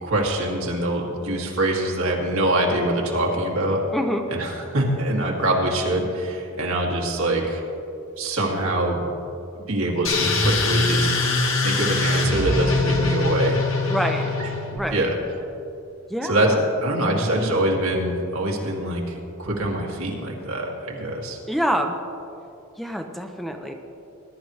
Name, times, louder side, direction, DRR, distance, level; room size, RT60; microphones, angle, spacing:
voice 1, 0.0-3.8 4.3-7.6 8.2-9.1 9.5-11.1 11.6-13.6 14.4-14.5 14.9-15.2 16.2-21.4, right 1 dB, 80° right, -1 dB, 2.3 m, -24 dB
voice 2, 3.9-4.2 13.9-14.3 14.7-15.0 16.1-16.5 21.5-22.0 22.8-23.7, equal, ahead, 4 dB, 0.6 m, -26 dB
sound 1, 10.0-14.8, left 2 dB, 65° left, 1.8 m, -22 dB
20.0 x 11.5 x 3.2 m, 2.7 s
head